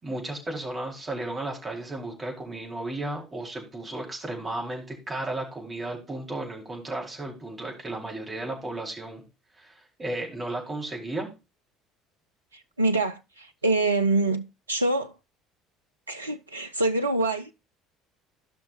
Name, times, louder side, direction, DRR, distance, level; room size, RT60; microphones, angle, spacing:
voice 1, 0.0-9.2 9.6-9.7 10.0-11.3, right 2 dB, 25° right, 4.4 m, -34 dB
voice 2, 12.5-15.1 16.1-17.5, right 2 dB, 85° right, 0.6 m, -25 dB
16.0 x 5.9 x 2.6 m
figure-of-eight pair, 60°, 0 cm